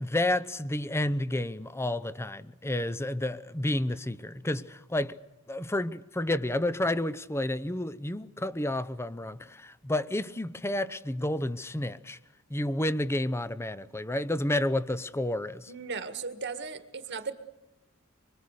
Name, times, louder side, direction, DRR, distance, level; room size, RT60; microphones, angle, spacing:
voice 1, 0.0-5.2 5.5-12.2 12.5-15.7, left 1 dB, 10° left, 0.8 m, -30 dB
voice 2, 15.7-17.3, right 5 dB, 55° right, 1.9 m, -36 dB
25.0 x 24.5 x 6.7 m
head